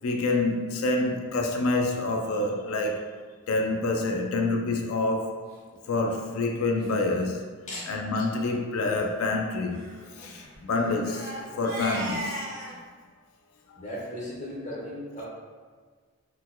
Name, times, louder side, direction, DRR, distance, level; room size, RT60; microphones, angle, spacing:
voice 1, 0.0-3.1 3.5-5.5 5.9-7.4 7.9-12.5 13.7-13.8, left 2 dB, 85° left, 2 dB, 0.4 m, -27 dB
Crying sobbing, 5.9-6.1 6.8-6.9 7.2-7.3 7.6-7.8 8.3-8.5 9.7-12.8, right 1 dB, 50° right, 0.9 m, -38 dB
voice 2, 13.7-15.3, left 1 dB, 35° left, -5 dB, 1.0 m, -36 dB
4.1 x 4.0 x 2.2 m, 1.5 s
head